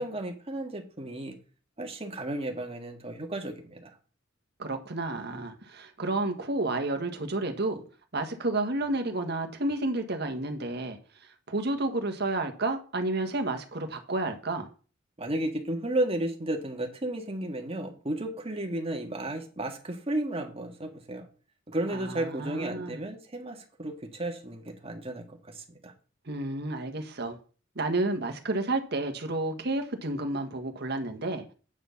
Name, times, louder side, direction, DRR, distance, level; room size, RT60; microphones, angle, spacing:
voice 1, 0.0-1.3 1.8-3.9 15.2-21.3 21.7-25.9, right 1 dB, 30° right, 1.7 m, -33 dB
voice 2, 4.6-7.8 8.1-14.7 21.9-23.0 26.2-27.4 27.7-31.4, right 2 dB, 55° right, 1.5 m, -31 dB
9.0 x 6.0 x 5.8 m
head